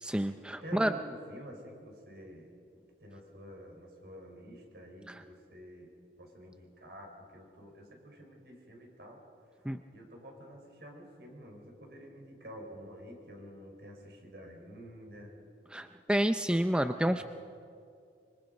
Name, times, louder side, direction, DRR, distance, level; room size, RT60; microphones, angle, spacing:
voice 1, 0.0-0.9 5.1-5.2 9.7-9.8 15.7-17.2, right 1 dB, 5° right, 9 dB, 0.4 m, -29 dB
voice 2, 0.6-2.5 3.0-5.9 6.2-9.2 9.9-15.3 17.0-17.2, equal, 65° right, 1 dB, 5.0 m, -49 dB
25.5 x 24.5 x 5.3 m, 2.4 s
head